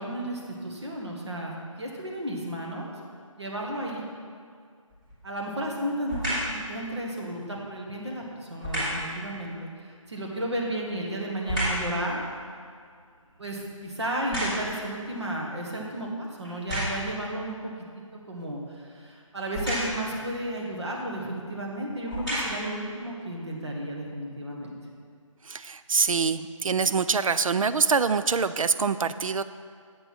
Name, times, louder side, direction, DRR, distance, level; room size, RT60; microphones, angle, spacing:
voice 1, 0.0-2.9 3.4-4.0 5.2-12.2 13.4-17.6 17.9-24.8, right 1 dB, 55° right, -2 dB, 1.6 m, -33 dB
sound 1, 4.9-5.3 6.0-6.6 8.6-9.1 10.5-11.9 12.4-14.9 15.6-15.7 16.4-17.2 19.5-20.1 21.1-21.2 21.9-22.7 23.4-23.5, equal, 15° right, 1.8 m, -31 dB
voice 2, 25.4-29.4, right 5 dB, 75° right, 13 dB, 0.4 m, -25 dB
7.8 x 6.9 x 4.2 m, 2.1 s
figure-of-eight pair, 175°, 17 cm